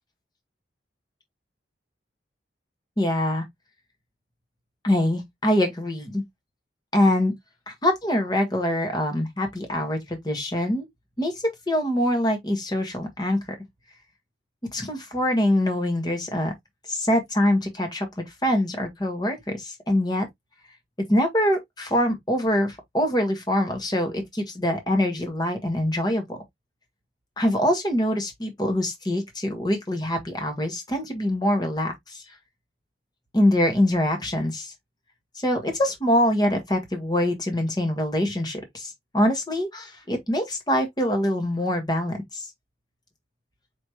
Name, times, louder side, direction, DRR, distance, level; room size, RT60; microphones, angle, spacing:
voice 1, 3.0-3.4 4.8-6.2 6.9-7.3 7.7-10.9 11.2-11.3 11.7-13.4 14.7-16.5 16.9-20.3 21.1-26.4 27.4-32.2 33.3-34.7 35.4-42.5, left 1 dB, 20° left, 1.4 m, -24 dB
4.7 x 3.2 x 2.9 m
head